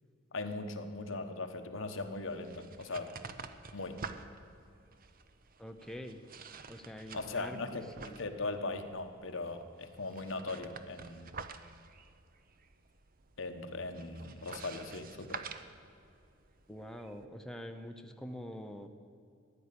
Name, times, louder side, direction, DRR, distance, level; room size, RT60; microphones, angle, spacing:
voice 1, 0.3-3.1 3.7-4.0 7.1-7.8 8.2-11.3 13.4-15.4, left 3 dB, 70° left, 6 dB, 1.3 m, -39 dB
sound 1, 1.9-17.2, right 5 dB, 45° right, 0.8 m, -50 dB
voice 2, 5.6-6.2 6.7-8.2 16.7-18.9, equal, 5° left, 5 dB, 0.7 m, -45 dB
15.0 x 10.0 x 8.5 m, 2.5 s
head